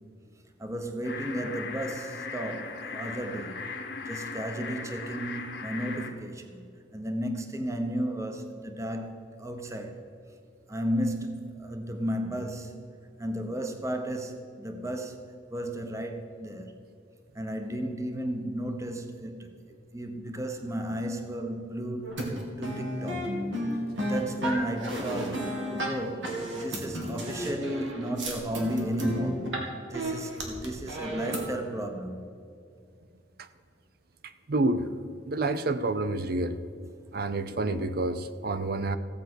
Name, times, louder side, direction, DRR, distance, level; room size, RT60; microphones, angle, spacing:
voice 1, 0.6-3.6 4.0-10.0 10.7-12.8 13.2-15.2 15.5-16.7 17.3-22.1 22.6-23.4 24.0-32.2, right 1 dB, 15° right, 0.9 m, -34 dB
sound 1, 1.0-6.1, left 4 dB, 60° left, 1.2 m, -38 dB
sound 2, 22.0-29.7 29.9-31.5, equal, 90° right, 2.4 m, -32 dB
voice 2, 34.5-34.9 35.3-36.6 37.1-39.0, right 2 dB, 55° right, 0.6 m, -28 dB
15.5 x 8.2 x 6.2 m
head